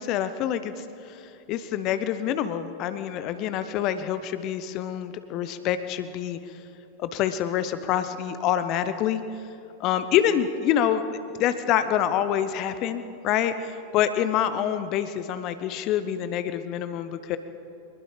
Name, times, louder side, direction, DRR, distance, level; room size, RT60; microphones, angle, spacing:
voice 1, 0.0-6.6 7.0-9.2 9.8-11.0 11.4-17.4, left 10 dB, 40° left, 11 dB, 0.9 m, -26 dB
24.0 x 21.0 x 5.1 m, 3.0 s
figure-of-eight pair, 90°, 0 cm